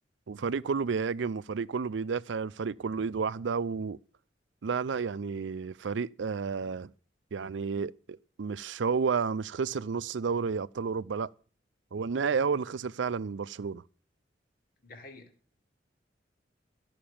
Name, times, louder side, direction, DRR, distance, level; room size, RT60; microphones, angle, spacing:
voice 1, 0.3-4.0 4.6-6.9 7.3-11.3 11.9-13.8, right 5 dB, 80° right, 0.5 m, -31 dB
voice 2, 14.8-15.5, left 2 dB, 55° left, 2.1 m, -50 dB
13.0 x 5.9 x 8.6 m
head